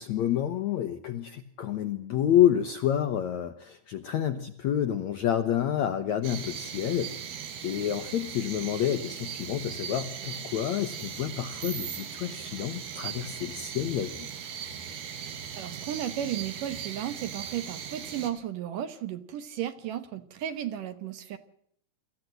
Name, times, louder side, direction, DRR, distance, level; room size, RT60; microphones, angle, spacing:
voice 1, 0.0-7.1 7.6-14.3, left 10 dB, 75° left, 8 dB, 1.7 m, -28 dB
sound 1, 6.2-18.3, right 8 dB, 85° right, 4.2 m, -39 dB
voice 2, 15.5-21.4, right 10 dB, 65° right, 11 dB, 2.4 m, -34 dB
24.5 x 14.5 x 7.8 m, 0.68 s
omnidirectional pair, 4.6 m